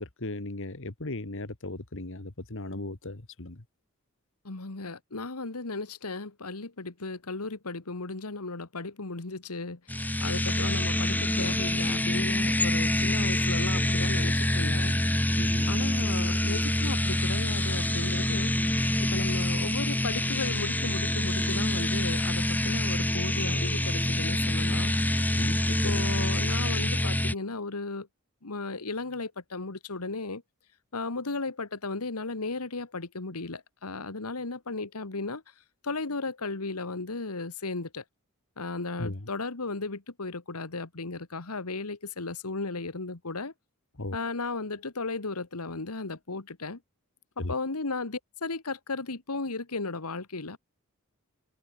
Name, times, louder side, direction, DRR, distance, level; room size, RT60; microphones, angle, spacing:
voice 1, 0.0-3.6 15.4-15.8 25.3-25.9 39.0-39.2 44.0-44.2 47.4-47.5, left 2 dB, 60° left, 1.8 m, -37 dB
voice 2, 4.5-15.0 15.7-18.5 19.0-24.9 25.7-28.1 28.4-30.4 30.9-35.4 35.8-38.0 38.6-43.5 44.1-46.8 47.4-50.6, left 3 dB, 90° left, 1.7 m, -35 dB
sound 1, 9.9-27.3, left 1 dB, 10° left, 1.4 m, -26 dB
head